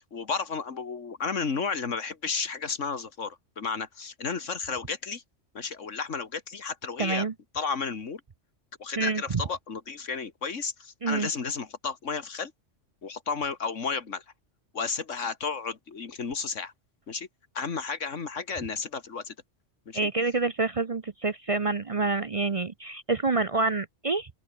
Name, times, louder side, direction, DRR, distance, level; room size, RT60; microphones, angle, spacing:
voice 1, 0.0-5.2 5.5-7.3 7.5-8.2 8.8-12.5 13.0-14.2 14.7-16.7 17.1-17.3 17.5-19.3 19.9-20.0, left 5 dB, 90° left, 2.2 m, -32 dB
voice 2, 7.0-7.3 9.0-9.2 11.0-11.3 19.9-24.3, right 3 dB, 35° right, 0.6 m, -27 dB
open air
omnidirectional pair, 1.2 m